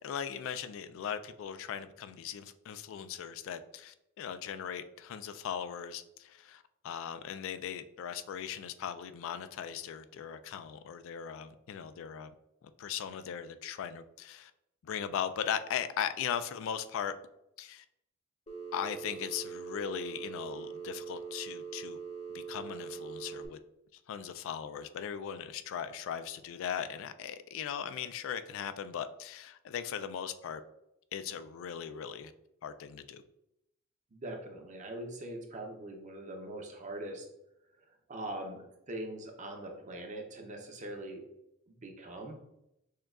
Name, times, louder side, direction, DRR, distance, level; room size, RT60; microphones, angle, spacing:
voice 1, 0.0-12.3 12.6-14.5 14.8-17.1 17.6-17.8 18.7-22.0 22.3-23.6 24.1-30.6 31.1-32.3 32.6-33.2, left 8 dB, 65° left, 12 dB, 0.3 m, -38 dB
Telephone, 18.5-23.5, right 6 dB, 30° left, 0.7 m, -42 dB
voice 2, 34.1-37.3 37.7-41.2 41.7-42.4, right 1 dB, 35° right, 3 dB, 0.6 m, -42 dB
6.4 x 2.3 x 2.3 m, 0.82 s
head